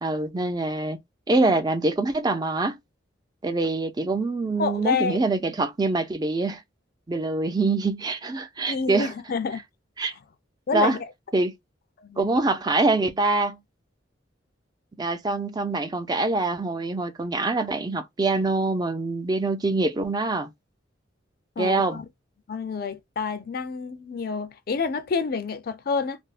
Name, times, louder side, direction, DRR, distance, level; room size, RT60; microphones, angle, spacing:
voice 1, 0.0-1.0 1.3-2.8 3.4-6.6 7.1-9.1 10.0-10.1 10.7-11.0 11.3-11.5 12.2-13.6 15.0-20.5 21.6-22.0, right 3 dB, 20° right, 0.4 m, -24 dB
voice 2, 4.6-5.2 8.7-9.6 10.7-11.1 12.0-12.4 21.6-22.1 22.5-26.2, left 5 dB, 50° left, 0.4 m, -28 dB
3.3 x 2.0 x 2.4 m
head